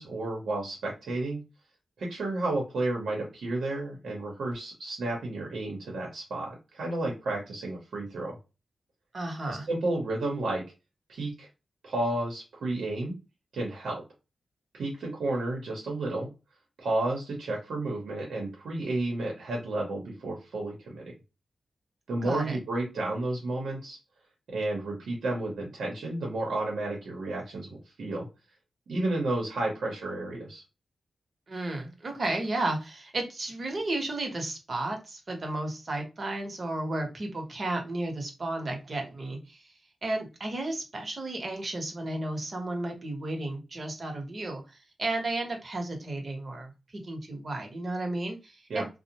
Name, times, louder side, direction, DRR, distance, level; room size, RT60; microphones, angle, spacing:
voice 1, 0.0-1.4 2.0-8.4 9.5-10.6 11.1-11.5 11.8-13.1 13.5-14.0 14.7-16.3 16.8-21.1 22.1-24.0 24.5-28.3 28.9-30.6 48.7-48.8, right 2 dB, 85° right, -1 dB, 0.8 m, -32 dB
voice 2, 9.1-9.7 22.2-22.6 31.5-39.6 40.0-48.9, right 2 dB, 50° right, 3 dB, 0.9 m, -33 dB
2.5 x 2.1 x 2.8 m, 0.28 s
cardioid pair, 65°, 0 cm